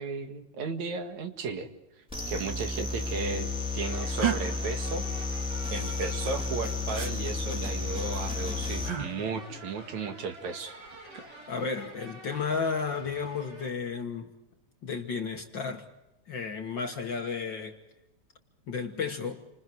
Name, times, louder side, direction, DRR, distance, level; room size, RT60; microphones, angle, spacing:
voice 1, 0.0-1.7 2.3-3.5 3.7-5.0 5.7-10.7, right 4 dB, 75° right, 3.1 m, -35 dB
sound 1, 2.1-8.9, left 4 dB, ahead, 3.8 m, -32 dB
sound 2, 3.9-13.7, right 2 dB, 55° right, 6.2 m, -48 dB
sound 3, 4.2-4.4 6.9-7.1 8.8-9.1 10.9-11.3, right 9 dB, 40° right, 2.7 m, -30 dB
voice 2, 11.5-14.3 14.8-15.8 16.3-17.8 18.7-19.4, left 5 dB, 45° left, 1.8 m, -33 dB
29.5 x 26.0 x 4.6 m
omnidirectional pair, 3.3 m